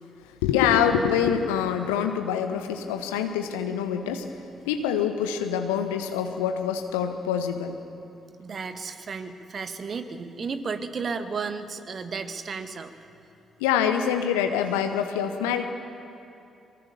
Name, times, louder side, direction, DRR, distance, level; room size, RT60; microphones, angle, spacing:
voice 1, 0.4-4.3 4.6-7.7 13.6-15.7, left 8 dB, 70° left, 7 dB, 1.1 m, -25 dB
voice 2, 8.4-12.9, right 5 dB, 45° right, 8 dB, 1.9 m, -33 dB
23.5 x 23.0 x 6.9 m, 2.7 s
figure-of-eight pair, 40°, 0 cm